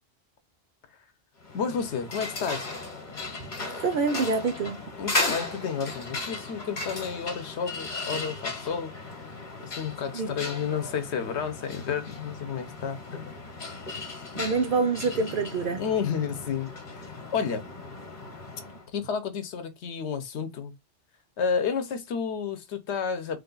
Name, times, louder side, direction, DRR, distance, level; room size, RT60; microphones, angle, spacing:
sound 1, 1.4-18.9, left 2 dB, 45° left, 1.1 m, -36 dB
voice 1, 1.5-2.6 5.0-8.9 9.6-13.3 15.8-17.6 18.9-20.7 21.4-23.4, left 6 dB, 75° left, 1.0 m, -31 dB
voice 2, 3.8-4.8 10.1-10.3 14.4-15.8, right 4 dB, 60° right, 0.6 m, -26 dB
3.2 x 2.4 x 3.8 m
omnidirectional pair, 1.2 m